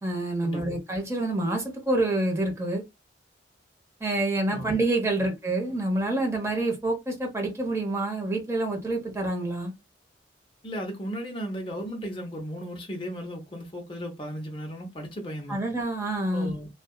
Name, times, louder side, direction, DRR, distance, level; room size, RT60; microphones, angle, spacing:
voice 1, 0.0-2.8 4.0-9.7 15.5-16.5, right 2 dB, 15° right, 0.9 m, -27 dB
voice 2, 10.6-15.6 16.3-16.7, equal, 30° left, 0.7 m, -35 dB
2.6 x 2.3 x 2.2 m
head